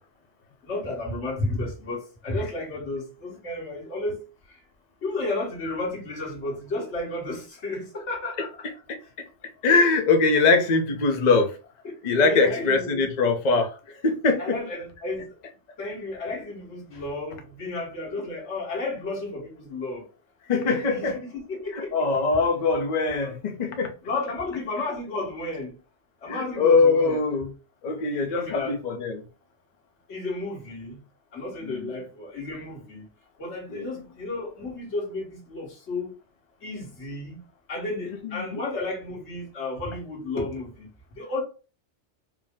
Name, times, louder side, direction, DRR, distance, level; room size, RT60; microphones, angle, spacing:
voice 1, 0.6-4.2 5.0-8.5 11.8-11.9 12.2-13.1 14.4-15.3 15.8-20.0 20.7-21.9 23.2-23.3 24.0-25.7 26.2-27.2 28.2-28.8 30.1-31.0 31.3-33.0 33.4-36.1 36.6-37.4 37.7-40.9 41.2-41.4, left 2 dB, 70° left, 1.7 m, -32 dB
voice 2, 9.6-11.5 12.0-13.8 14.0-14.6 20.5-21.2 21.8-23.9 26.3-27.5 27.8-29.2 31.6-31.9 33.7-33.9 38.3-38.6, left 4 dB, 45° left, 0.7 m, -22 dB
4.8 x 2.0 x 3.6 m
omnidirectional pair, 1.2 m